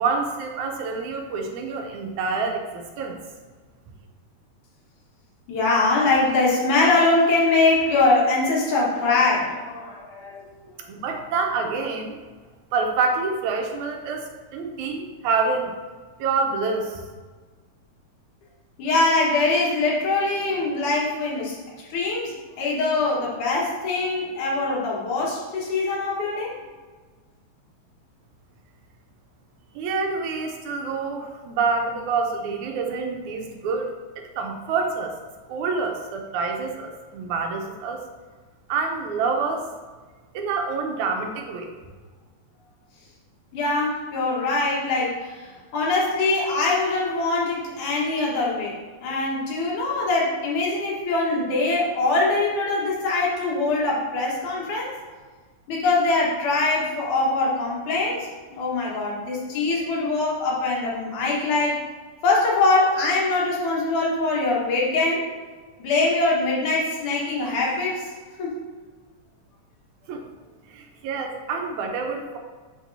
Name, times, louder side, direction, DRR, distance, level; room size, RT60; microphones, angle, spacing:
voice 1, 0.0-3.2 10.9-12.2 12.7-15.7 16.2-17.0 29.8-33.9 34.2-35.1 35.5-38.0 38.7-39.7 40.3-41.7 70.1-70.2 70.7-72.4, right 4 dB, 85° right, 3 dB, 2.2 m, -27 dB
voice 2, 5.5-10.5 18.8-21.6 21.9-26.5 43.5-54.9 55.7-61.8 62.2-65.3 65.8-68.1 68.4-68.5, left 3 dB, 85° left, -4 dB, 2.9 m, -23 dB
10.0 x 4.1 x 2.7 m, 1.4 s
omnidirectional pair, 3.4 m